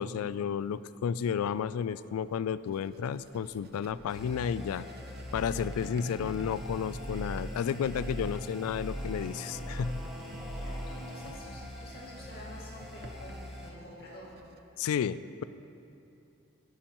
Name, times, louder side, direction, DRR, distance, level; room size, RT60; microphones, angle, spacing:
voice 1, 0.0-4.9 5.3-10.0 14.8-15.4, left 7 dB, 85° left, 16 dB, 0.3 m, -32 dB
Writing, 2.7-14.6, right 2 dB, 45° right, 0.5 m, -55 dB
sound 1, 4.1-13.7, equal, ahead, 1.1 m, -40 dB
voice 2, 10.2-14.3, left 1 dB, 45° left, -5 dB, 2.2 m, -49 dB
16.5 x 8.7 x 3.0 m, 2.8 s
head